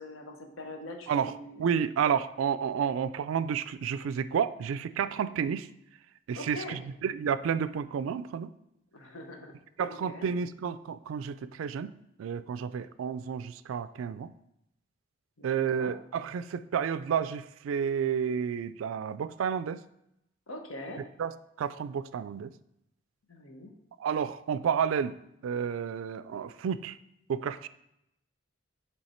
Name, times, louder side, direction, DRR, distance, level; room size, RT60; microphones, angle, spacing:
voice 1, 0.0-1.6 6.3-6.8 8.9-10.3 15.4-15.9 20.5-21.0 23.3-23.7, left 1 dB, 90° left, 4 dB, 0.9 m, -43 dB
voice 2, 1.6-5.7 6.3-8.5 9.8-11.9 12.2-14.3 15.4-19.8 21.2-22.5 24.0-25.2 25.4-27.0 27.3-27.7, right 7 dB, 80° right, 15 dB, 0.3 m, -31 dB
7.9 x 3.4 x 4.3 m, 0.81 s
head